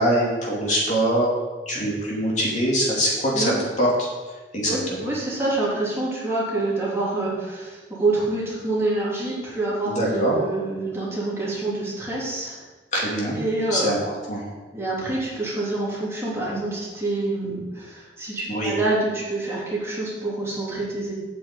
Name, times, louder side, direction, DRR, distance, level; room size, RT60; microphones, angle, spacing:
voice 1, 0.0-1.3 1.7-4.1 4.5-5.1 9.9-10.3 12.9-13.4 13.7-14.5 18.5-18.7, equal, 40° left, -4 dB, 2.9 m, -23 dB
voice 2, 4.6-12.6 13.3-13.9 14.7-21.1, right 2 dB, 15° right, -7 dB, 3.1 m, -27 dB
9.0 x 6.1 x 8.4 m, 1.3 s
head